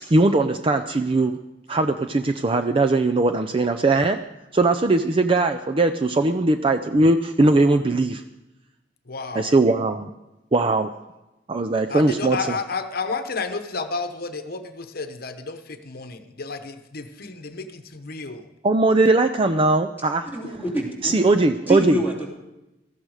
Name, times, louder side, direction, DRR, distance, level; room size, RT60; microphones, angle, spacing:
voice 1, 0.1-1.3 1.7-4.2 4.5-8.2 9.3-10.1 10.5-10.9 11.5-12.6 18.6-20.3 21.0-22.0, right 2 dB, 30° right, 7 dB, 0.5 m, -20 dB
voice 2, 9.1-9.5 11.9-18.5, left 4 dB, 55° left, 8 dB, 1.0 m, -31 dB
voice 3, 20.3-21.1 21.7-22.3, equal, 10° right, -3 dB, 3.1 m, -26 dB
17.5 x 13.5 x 4.9 m, 0.98 s
head